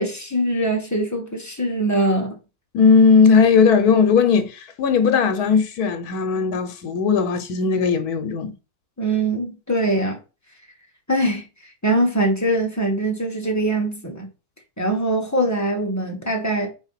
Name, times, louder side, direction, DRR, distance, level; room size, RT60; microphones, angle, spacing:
voice 1, 0.0-2.4 9.0-10.2 11.1-11.4 11.8-14.3 14.8-16.7, right 1 dB, 10° left, 1.3 m, -22 dB
voice 2, 2.7-8.5, left 5 dB, 85° left, 1.3 m, -17 dB
4.7 x 4.0 x 5.6 m
omnidirectional pair, 1.6 m